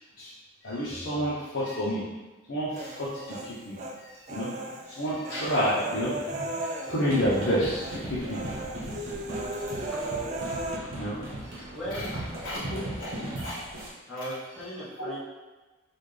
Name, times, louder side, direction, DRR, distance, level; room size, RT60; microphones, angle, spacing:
voice 1, 0.6-2.1 2.5-4.5 4.9-8.4 10.2-10.3 11.0-11.2 11.5-11.6 12.4-12.6 13.0-13.1 13.4-13.5 15.0-15.1, equal, 65° left, -9 dB, 0.8 m, -30 dB
Human voice, 2.8-4.0 4.3-7.5 7.8-8.0 8.3-10.8, right 2 dB, 35° right, 0.3 m, -36 dB
sound 1, 7.0-13.9, right 1 dB, 80° right, 1.0 m, -37 dB
voice 2, 11.7-12.4 14.1-15.2, equal, ahead, -11 dB, 0.9 m, -38 dB
4.1 x 2.4 x 3.2 m, 1.2 s
head